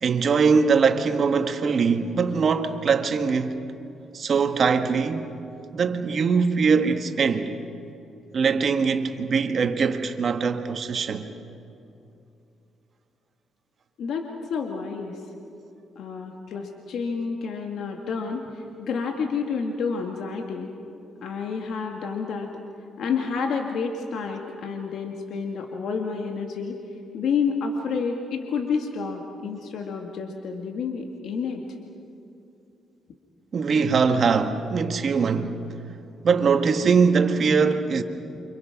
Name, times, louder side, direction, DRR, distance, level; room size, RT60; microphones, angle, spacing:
voice 1, 0.0-3.6 4.1-5.3 5.7-7.5 8.3-11.3 33.5-35.6 36.2-38.0, right 5 dB, 50° right, 1.8 m, -22 dB
voice 2, 14.0-15.2 16.0-20.7 21.2-22.5 23.0-26.8 27.1-31.6, left 5 dB, 70° left, 2.1 m, -29 dB
29.0 x 26.0 x 6.0 m
cardioid pair, 90°, 0 cm